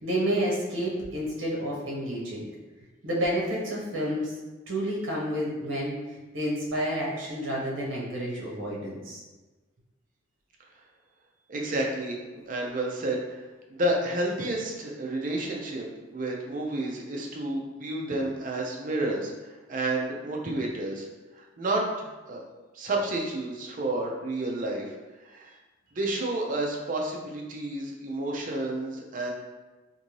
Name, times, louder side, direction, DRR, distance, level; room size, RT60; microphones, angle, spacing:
voice 1, 0.0-2.5 3.0-4.4 4.7-9.2, equal, 70° right, -4 dB, 0.8 m, -30 dB
voice 2, 11.5-12.2 12.5-15.9 16.1-21.1 21.3-22.4 22.7-24.9 25.2-25.5 25.9-29.3, right 1 dB, 40° right, 0 dB, 0.5 m, -30 dB
2.6 x 2.6 x 3.0 m, 1.2 s
head